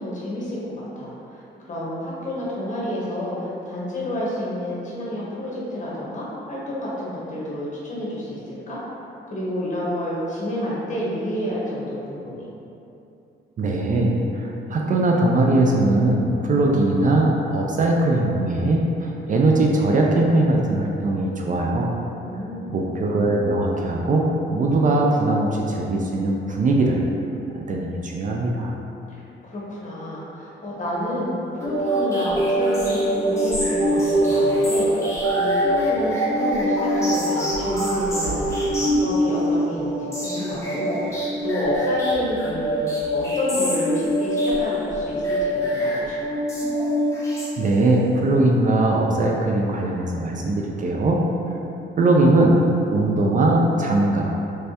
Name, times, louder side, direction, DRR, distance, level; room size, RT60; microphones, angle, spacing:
voice 1, 0.0-8.8 9.3-12.5 22.2-22.8 29.1-42.8 43.1-46.4, left 1 dB, 40° left, -7 dB, 1.2 m, -29 dB
voice 2, 13.6-21.9 22.7-27.0 27.5-28.7 47.6-51.2 52.0-52.6 52.9-54.3, right 2 dB, 40° right, -1 dB, 0.4 m, -20 dB
sound 1, 31.6-48.0, equal, 15° left, 1.1 m, -23 dB
3.3 x 3.3 x 2.8 m, 2.8 s
cardioid pair, 90°, 20 cm